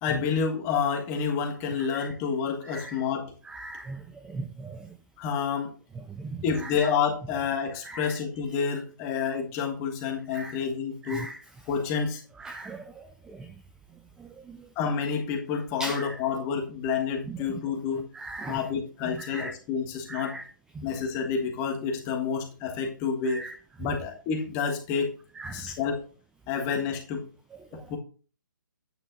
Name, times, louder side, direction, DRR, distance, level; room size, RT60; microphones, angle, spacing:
voice 1, 0.0-3.3 5.2-5.7 6.4-11.3 11.7-12.2 14.7-18.1 18.5-20.4 20.8-23.4 23.8-25.2 25.5-26.1 26.5-27.3 27.7-28.0, left 6 dB, 25° left, 1.5 m, -29 dB
voice 2, 3.5-4.0 4.3-4.9 6.2-6.3 7.8-8.1 10.3-10.6 11.1-11.4 12.4-13.0 15.8-16.1 18.2-18.6 19.3-19.5 20.1-20.4 20.8-20.9 23.3-23.5 25.4-25.7 27.7-27.8, right 2 dB, 5° right, 0.4 m, -38 dB
11.0 x 9.0 x 2.6 m
figure-of-eight pair, 135°, 11 cm